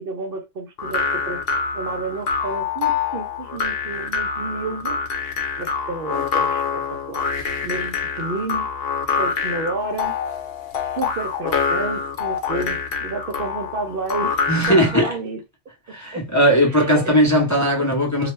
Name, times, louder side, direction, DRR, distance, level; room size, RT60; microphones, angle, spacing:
voice 1, 0.0-5.0 5.6-7.3 7.6-8.7 9.1-10.2 10.8-14.3 14.6-15.4 16.1-16.3 16.7-17.2, right 3 dB, 65° right, 0.7 m, -31 dB
sound 1, 0.8-15.0, left 5 dB, 65° left, 0.8 m, -25 dB
voice 2, 14.5-15.1 15.9-18.3, equal, 20° left, 0.6 m, -18 dB
2.3 x 2.2 x 3.0 m
omnidirectional pair, 1.1 m